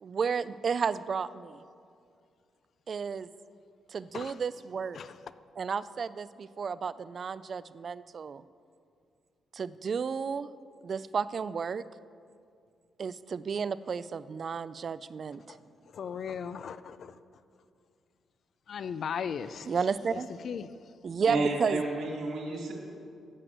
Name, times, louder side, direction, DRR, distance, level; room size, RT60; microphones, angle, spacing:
voice 1, 0.0-1.6 2.9-3.3 3.9-5.0 5.6-8.4 9.5-10.5 10.8-11.8 13.0-15.6 19.6-20.3 21.0-21.8, right 6 dB, 40° right, 0.3 m, -32 dB
voice 2, 15.9-17.2 18.7-19.7 20.1-20.2 20.4-20.7, left 7 dB, 50° left, 0.5 m, -37 dB
voice 3, 21.3-22.7, right 2 dB, 70° right, 2.8 m, -31 dB
12.0 x 7.8 x 8.0 m
wide cardioid pair, 160°, 0 cm